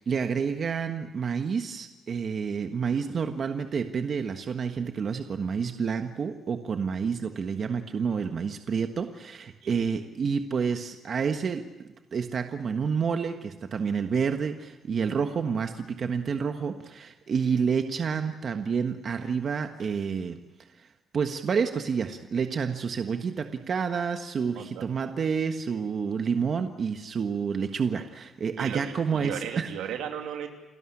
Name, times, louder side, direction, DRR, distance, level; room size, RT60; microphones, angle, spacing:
voice 1, 0.0-11.6 12.1-20.4 20.8-20.9 21.1-29.7, right 6 dB, 50° right, 6 dB, 1.4 m, -29 dB
voice 2, 24.5-24.8 28.6-28.8 29.1-30.5, right 9 dB, 90° right, 4 dB, 2.8 m, -35 dB
29.5 x 13.0 x 9.9 m, 1.1 s
cardioid pair, 90°, 0 cm